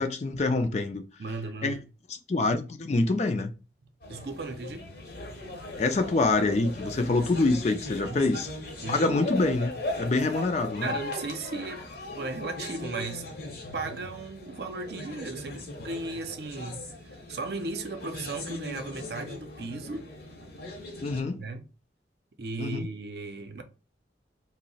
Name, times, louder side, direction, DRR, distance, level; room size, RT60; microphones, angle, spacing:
voice 1, 0.0-1.0 1.6-1.8 2.3-3.5 5.8-8.5 8.9-9.7 10.0-10.9 21.0-21.4 22.6-22.9, left 3 dB, 35° left, 0.4 m, -26 dB
voice 2, 1.2-1.8 4.1-4.9 8.0-8.3 8.8-9.1 10.8-11.9 12.2-13.3 13.7-16.8 17.3-20.1 21.4-21.7 22.4-23.6, right 3 dB, 60° right, 0.5 m, -36 dB
sound 1, 4.0-21.2, left 2 dB, 55° left, 0.8 m, -39 dB
2.7 x 2.0 x 3.9 m
head